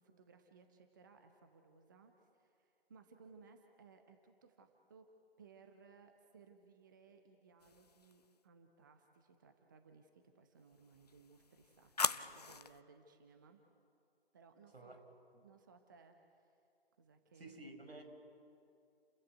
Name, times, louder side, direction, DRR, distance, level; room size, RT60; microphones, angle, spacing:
voice 1, 0.0-5.1 5.4-13.6 14.3-14.9 15.4-16.6 17.0-17.5, right 5 dB, 20° right, 6 dB, 0.9 m, -63 dB
sound 1, 7.6-8.3 10.7-12.8, left 5 dB, 40° left, 0.6 m, -41 dB
voice 2, 17.3-18.0, right 2 dB, 75° right, 5 dB, 4.8 m, -52 dB
30.0 x 14.5 x 8.1 m, 2.5 s
figure-of-eight pair, 150°, 30 cm